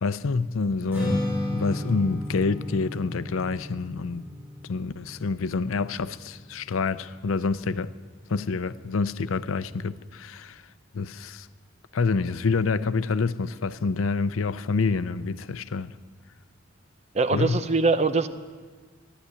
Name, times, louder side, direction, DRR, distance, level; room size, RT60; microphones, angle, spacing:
voice 1, 0.0-4.2 4.6-7.9 8.3-10.6 10.9-11.5 11.9-15.9 17.3-17.6, left 4 dB, 90° left, 0.5 m, -27 dB
Strum, 0.9-7.2, left 1 dB, 10° right, 6.6 m, -33 dB
voice 2, 17.1-18.3, right 3 dB, 35° right, 0.6 m, -22 dB
13.0 x 11.0 x 9.5 m
head